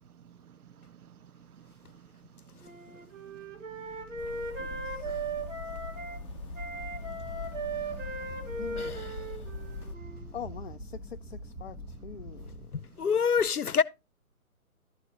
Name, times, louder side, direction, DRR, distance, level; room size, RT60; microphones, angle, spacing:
voice 1, 0.1-8.5 8.7-8.8 9.8-10.3, right 9 dB, 85° right, 0.5 m, -55 dB
Wind instrument woodwind instrument, 2.6-6.2 6.5-10.3, right 3 dB, 60° right, 2.6 m, -38 dB
sound 1, 3.5-12.7, equal, 10° right, 0.9 m, -45 dB
sound 2, 4.2-10.0, left 4 dB, 20° left, 0.9 m, -43 dB
voice 2, 4.6-5.2 8.4-9.0 10.3-12.9, left 7 dB, 50° left, 0.5 m, -45 dB
voice 3, 8.8-9.1 13.0-13.8, left 6 dB, 85° left, 0.8 m, -26 dB
12.0 x 8.7 x 2.9 m
figure-of-eight pair, 140°, 44 cm